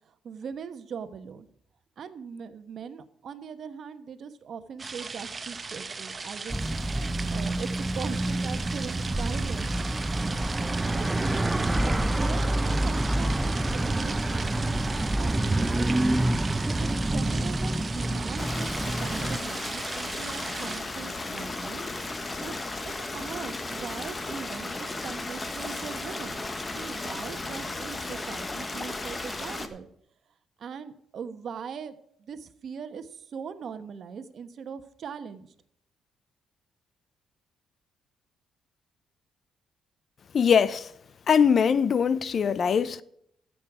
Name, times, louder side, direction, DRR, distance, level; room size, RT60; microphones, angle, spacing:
voice 1, 0.0-1.5 2.0-6.6 7.3-9.7 10.9-11.1 11.5-14.5 14.9-16.2 16.7-21.8 22.4-26.5 26.7-29.9 30.6-35.5, right 6 dB, 60° right, 1.1 m, -40 dB
sound 1, 4.8-20.8, right 4 dB, 30° right, 0.9 m, -38 dB
sound 2, 6.5-19.4, right 1 dB, 15° right, 0.6 m, -27 dB
Stream, 18.4-29.7, left 2 dB, 25° left, 1.4 m, -35 dB
voice 2, 40.3-40.9 41.3-43.0, left 7 dB, 50° left, 0.6 m, -22 dB
15.0 x 7.8 x 4.8 m
cardioid pair, 90°, 0 cm